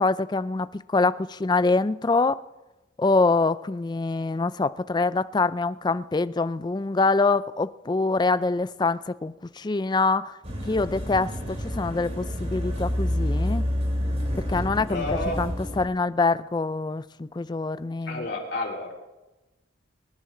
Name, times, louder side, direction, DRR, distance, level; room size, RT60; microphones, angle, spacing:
voice 1, 0.0-2.4 3.0-10.4 10.7-13.6 14.5-15.0 15.4-18.3, left 3 dB, 20° left, 0.3 m, -25 dB
sound 1, 10.4-15.9, equal, 30° right, 2.4 m, -28 dB
voice 2, 14.9-15.4 18.0-18.9, left 2 dB, 60° left, 4.0 m, -30 dB
23.0 x 10.0 x 3.8 m
head